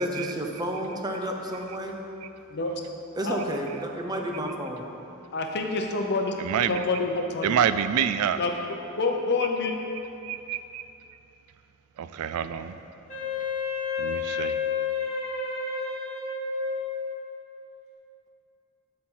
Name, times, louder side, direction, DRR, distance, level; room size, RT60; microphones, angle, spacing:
voice 1, 0.0-2.0 3.1-4.9, right 1 dB, 20° right, 2 dB, 0.6 m, -31 dB
voice 2, 5.3-6.4 6.7-7.6 8.4-8.5 9.0-9.7, left 3 dB, 50° left, 3 dB, 0.7 m, -27 dB
voice 3, 6.4-6.8 7.4-8.4 10.2-10.8 12.0-12.7 14.0-14.6, right 8 dB, 90° right, 11 dB, 0.3 m, -27 dB
Wind instrument woodwind instrument, 13.1-17.3, left 5 dB, 35° left, 1.7 m, -30 dB
11.5 x 4.4 x 3.8 m, 2.8 s
head